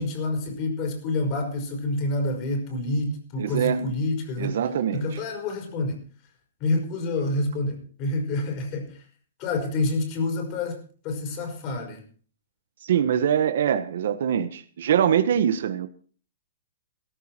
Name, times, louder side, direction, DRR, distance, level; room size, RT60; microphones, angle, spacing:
voice 1, 0.0-4.6 4.9-6.0 6.6-9.0 9.4-12.1, left 2 dB, 30° left, 4 dB, 5.2 m, -28 dB
voice 2, 3.4-3.9 4.4-5.2 12.8-15.9, right 9 dB, 60° right, 10 dB, 1.4 m, -23 dB
17.0 x 14.5 x 4.5 m, 0.43 s
hypercardioid pair, 165°, 0 cm